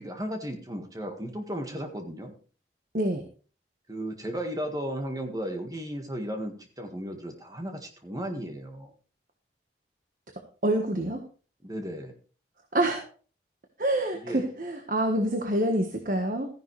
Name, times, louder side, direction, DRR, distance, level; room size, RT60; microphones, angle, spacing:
voice 1, 0.0-2.3 3.9-8.9 11.6-12.1 14.2-14.4, equal, 20° right, 4 dB, 1.7 m, -35 dB
voice 2, 10.6-11.2 12.7-13.0 13.8-16.5, right 1 dB, 50° right, 4 dB, 1.5 m, -26 dB
14.0 x 10.5 x 3.3 m, 0.38 s
head